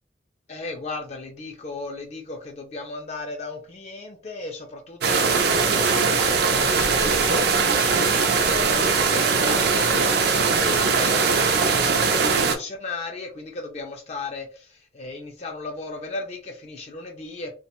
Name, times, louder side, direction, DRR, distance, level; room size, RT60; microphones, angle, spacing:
voice 1, 0.5-17.6, left 3 dB, 35° left, 0.4 m, -36 dB
sound 1, 5.0-12.5, right 5 dB, 60° right, 0.4 m, -20 dB
2.4 x 2.1 x 2.9 m
head